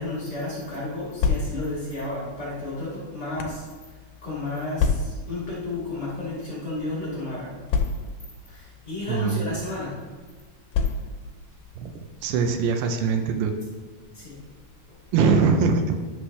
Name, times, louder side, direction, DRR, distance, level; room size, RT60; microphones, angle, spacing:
voice 1, 0.0-3.7 4.2-7.6 8.5-10.0 14.1-14.4 14.9-15.0, left 2 dB, 30° left, -9 dB, 2.3 m, -32 dB
sound 1, 1.2-1.8 2.6-3.7 4.8-5.4 6.2-6.4 6.7-6.8 7.7-8.3 9.2-9.4 10.7-11.3, left 5 dB, 75° left, 2.5 m, -26 dB
voice 2, 9.1-9.5 11.8-11.9 12.2-13.5 15.1-16.0, right 5 dB, 80° right, 6 dB, 2.6 m, -22 dB
11.5 x 6.2 x 3.2 m, 1.4 s
omnidirectional pair, 4.7 m